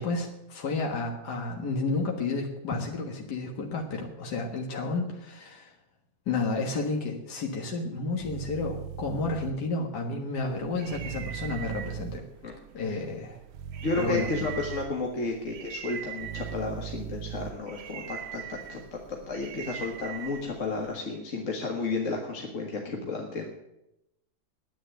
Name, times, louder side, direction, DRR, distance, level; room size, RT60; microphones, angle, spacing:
voice 1, 0.0-5.7 6.3-12.3 12.7-13.4 14.0-14.3, left 3 dB, 75° left, 1 dB, 2.1 m, -31 dB
sound 1, 8.2-9.5 10.9-12.2 13.5-14.9 16.2-17.5, right 10 dB, 85° right, 1.3 m, -39 dB
sound 2, 10.4-21.0, right 10 dB, 60° right, 0.7 m, -43 dB
voice 2, 12.4-13.0 13.8-23.5, left 3 dB, 50° left, 1 dB, 1.9 m, -32 dB
10.5 x 9.3 x 9.0 m, 0.87 s
omnidirectional pair, 1.8 m